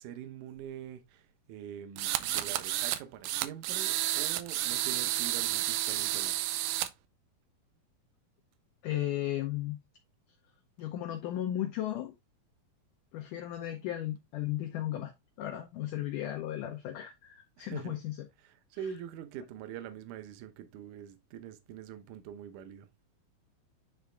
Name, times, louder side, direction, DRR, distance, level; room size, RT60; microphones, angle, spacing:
voice 1, 0.0-6.6 17.6-18.0 18.4-22.9, right 9 dB, 75° right, 1.9 m, -44 dB
sound 1, 2.0-3.0 3.2-6.9, right 14 dB, 90° right, 2.0 m, -31 dB
voice 2, 8.8-9.8 10.8-12.1 13.1-15.1 15.4-18.2, left 13 dB, 85° left, 1.8 m, -35 dB
9.7 x 3.6 x 3.3 m
omnidirectional pair, 4.6 m